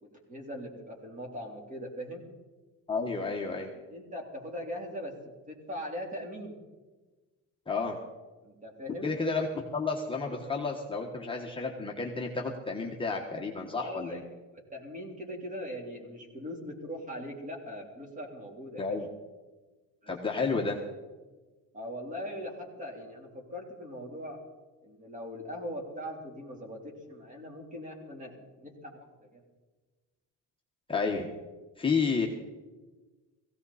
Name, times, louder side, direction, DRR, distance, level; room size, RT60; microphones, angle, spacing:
voice 1, 0.0-2.3 3.9-5.2 5.5-6.6 8.4-9.1 13.7-14.2 14.7-19.0 20.0-20.1 21.7-24.4 24.8-29.4, equal, 25° right, 1 dB, 3.4 m, -40 dB
voice 2, 2.9-3.7 7.7-8.0 9.0-9.5 9.7-14.2 18.8-19.1 20.1-20.8 30.9-31.3 31.8-32.3, left 4 dB, 15° left, 0 dB, 1.3 m, -31 dB
17.5 x 16.0 x 4.2 m, 1.2 s
cardioid pair, 145°, 31 cm